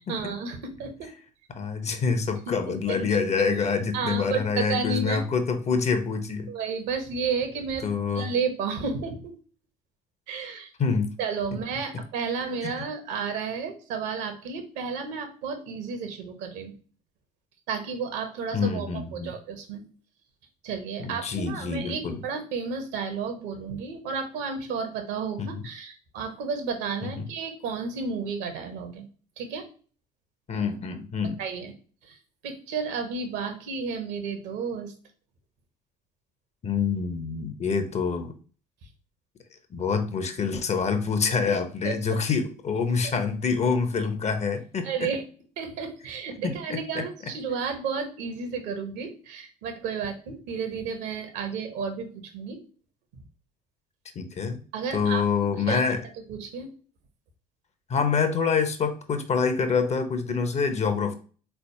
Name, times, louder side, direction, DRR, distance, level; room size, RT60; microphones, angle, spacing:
voice 1, 0.1-1.1 2.5-2.6 2.9-3.0 3.9-5.2 6.5-7.9 8.1-9.3 10.3-10.7 11.2-16.7 17.7-18.9 19.1-19.8 20.6-29.1 29.4-29.7 31.4-31.7 32.0-32.2 32.4-34.9 41.5-41.6 41.8-41.9 43.0-43.1 44.8-45.2 45.6-52.6 54.7-55.2 55.7-55.8 56.3-56.7, right 5 dB, 60° right, 6 dB, 1.0 m, -32 dB
voice 2, 1.5-6.5 7.8-8.3 10.8-11.1 12.6-12.7 18.5-19.3 21.0-22.2 25.4-25.6 27.0-27.3 30.5-31.4 36.6-38.3 39.7-45.1 46.4-47.0 54.2-54.6 54.9-56.0 57.9-61.1, left 5 dB, 35° left, 8 dB, 0.8 m, -26 dB
4.0 x 3.4 x 2.7 m, 0.40 s
figure-of-eight pair, 55°, 20 cm